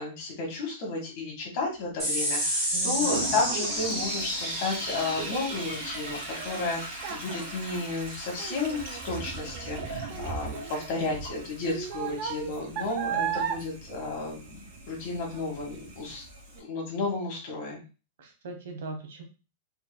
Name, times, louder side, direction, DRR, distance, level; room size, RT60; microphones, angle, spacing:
voice 1, 0.0-14.6 14.9-16.2 16.5-17.8, left 3 dB, 35° left, -2 dB, 1.6 m, -32 dB
sound 1, 2.0-8.8, equal, 10° right, 1.8 m, -32 dB
Child speech kid speaking, 2.3-15.0 15.3-15.7 16.2-16.3, right 8 dB, 30° right, 0.5 m, -37 dB
voice 2, 2.7-3.1 13.1-13.2 18.2-19.2, right 4 dB, 65° right, 4 dB, 1.2 m, -39 dB
Toilet flush, 3.0-16.6, right 3 dB, 50° right, 1.9 m, -41 dB
4.3 x 3.7 x 2.3 m, 0.32 s
supercardioid pair, 175°, 0 cm